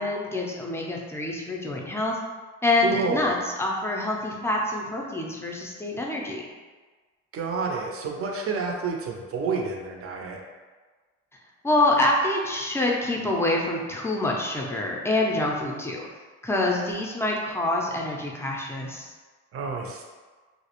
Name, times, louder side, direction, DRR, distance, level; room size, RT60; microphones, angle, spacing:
voice 1, 0.0-2.2 2.6-3.3 3.6-6.5 11.6-16.1 16.4-19.1, left 2 dB, 10° left, -2 dB, 0.4 m, -26 dB
voice 2, 2.8-3.4 7.3-10.4 19.5-20.0, right 4 dB, 50° right, 1 dB, 0.5 m, -29 dB
2.3 x 2.0 x 2.9 m, 1.4 s
cardioid pair, 90°, 30 cm